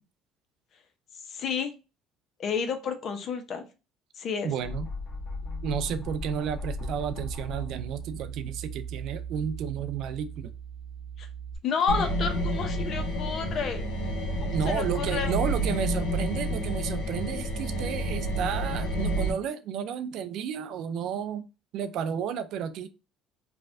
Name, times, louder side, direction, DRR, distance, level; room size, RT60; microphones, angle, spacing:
voice 1, 1.3-1.7 2.4-3.7 4.2-4.5 11.2-11.3 11.6-13.8 14.4-15.3, left 6 dB, 55° left, 0.6 m, -30 dB
voice 2, 4.4-4.9 5.6-10.5 14.5-21.4 21.7-22.9, right 8 dB, 65° right, 0.4 m, -32 dB
sound 1, 4.6-11.6, right 1 dB, 35° left, 1.0 m, -37 dB
sound 2, 11.9-19.3, right 1 dB, 85° left, 0.8 m, -29 dB
3.2 x 2.2 x 2.5 m
supercardioid pair, 75°, 0 cm